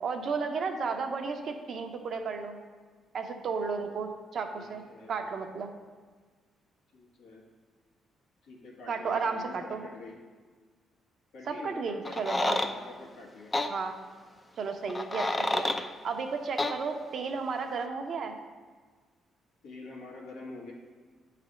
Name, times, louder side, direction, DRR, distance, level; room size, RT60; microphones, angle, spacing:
voice 1, 0.0-2.6 3.1-4.8 5.1-5.7 8.9-9.8 11.5-12.6 13.7-13.9 14.6-18.3, right 5 dB, 60° right, 5 dB, 0.7 m, -33 dB
voice 2, 4.5-5.2 6.9-7.4 8.4-10.2 11.3-13.5 19.6-20.7, left 2 dB, 85° left, -2 dB, 1.4 m, -46 dB
sound 1, 12.0-12.7 13.5-13.7 14.9-15.8 16.6-16.8, left 2 dB, 20° left, 0.4 m, -28 dB
8.4 x 3.3 x 5.0 m, 1.5 s
cardioid pair, 90°, 0 cm